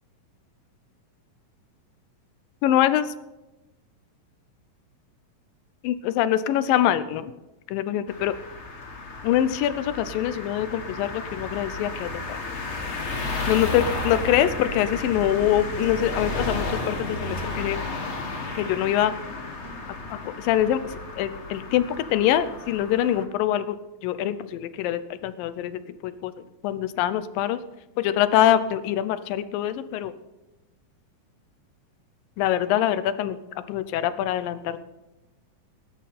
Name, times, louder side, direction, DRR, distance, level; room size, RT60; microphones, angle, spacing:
voice 1, 2.6-3.1 5.8-7.3 7.7-8.3 9.2-12.4 13.5-17.8 18.6-19.2 20.1-27.7 28.0-30.1 32.4-34.8, left 11 dB, 80° left, 13 dB, 2.4 m, -24 dB
sound 1, 8.1-23.2, left 3 dB, 65° left, 0.6 m, -33 dB
18.0 x 11.0 x 4.3 m, 1.0 s
omnidirectional pair, 4.0 m